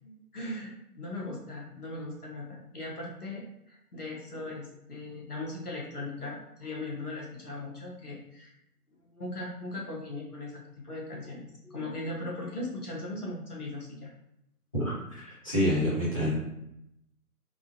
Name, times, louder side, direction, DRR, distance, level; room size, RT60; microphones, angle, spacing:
voice 1, 0.0-3.4 3.7-8.5 9.0-14.1, left 2 dB, 70° left, -3 dB, 1.1 m, -39 dB
voice 2, 14.7-16.4, equal, 20° left, -11 dB, 0.9 m, -28 dB
3.6 x 2.2 x 2.5 m, 0.81 s
figure-of-eight pair, 155°, 47 cm